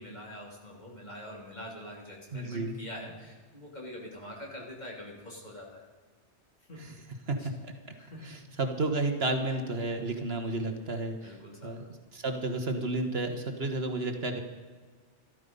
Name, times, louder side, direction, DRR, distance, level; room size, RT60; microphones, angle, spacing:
voice 1, 0.0-5.8 6.7-7.0 7.4-7.5 8.0-8.4 11.2-11.7, left 1 dB, 40° left, -2 dB, 3.2 m, -44 dB
voice 2, 2.3-2.7 7.3-7.4 7.6-7.7 8.2-11.3 11.6-11.8 12.1-14.4, right 2 dB, 60° right, 5 dB, 1.5 m, -31 dB
13.5 x 13.5 x 5.4 m, 1.5 s
omnidirectional pair, 1.2 m